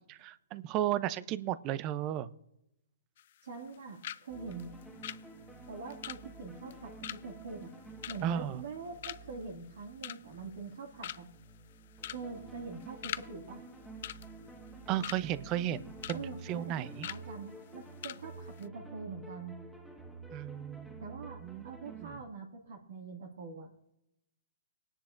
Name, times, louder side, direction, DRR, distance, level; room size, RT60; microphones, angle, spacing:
voice 1, 0.1-2.3 8.2-8.6 14.9-17.1 20.3-21.0 21.4-21.7 22.0-22.1, right 12 dB, 30° right, 17 dB, 0.5 m, -34 dB
sound 1, 3.2-3.8 4.0-4.3 4.5-8.7 9.0-9.4 9.8-10.4 10.7-10.8 11.0-11.4 12.0-12.3 12.5-13.3 13.5-13.7 14.0-15.2 15.6-16.2 16.5-16.6 17.0-17.2 17.7-17.8 18.0-18.2 18.5-18.7, left 11 dB, 55° left, 0.4 m, -42 dB
voice 2, 3.4-4.8 5.7-7.7 8.1-11.3 12.1-13.6 16.1-19.6 21.0-23.9, right 4 dB, 70° right, -1 dB, 2.2 m, -44 dB
sound 2, 4.3-22.2, right 3 dB, 5° right, 1.4 m, -50 dB
20.5 x 10.0 x 2.6 m, 0.85 s
hypercardioid pair, 135°, 0 cm